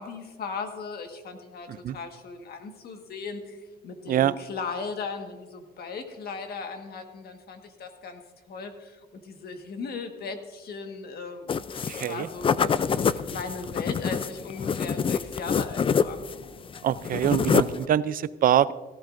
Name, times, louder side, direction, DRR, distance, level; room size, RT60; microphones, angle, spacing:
voice 1, 0.0-8.2 8.5-16.2, left 4 dB, 70° left, 5 dB, 1.5 m, -37 dB
sound 1, 11.5-12.1 12.4-16.4 16.7-17.8, left 6 dB, 30° left, 0.4 m, -26 dB
voice 2, 11.9-12.3 16.8-18.7, right 10 dB, 55° right, 17 dB, 0.5 m, -24 dB
17.5 x 14.5 x 2.6 m, 1.3 s
cardioid pair, 100°, 17 cm